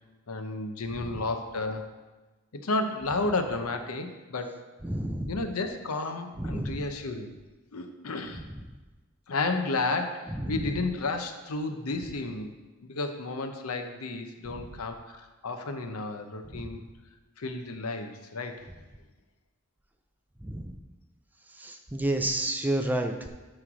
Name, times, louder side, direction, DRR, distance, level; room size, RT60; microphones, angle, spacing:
voice 1, 0.3-1.9 2.6-4.6 5.3-7.3 7.7-8.4 9.3-12.5 12.8-16.8 17.4-18.6, left 3 dB, 80° left, 6 dB, 0.7 m, -32 dB
voice 2, 4.8-5.3 6.4-6.7 10.4-10.7 16.5-16.7 20.4-20.7 21.6-23.3, right 1 dB, 10° right, 5 dB, 0.4 m, -30 dB
9.6 x 3.2 x 6.1 m, 1.2 s
head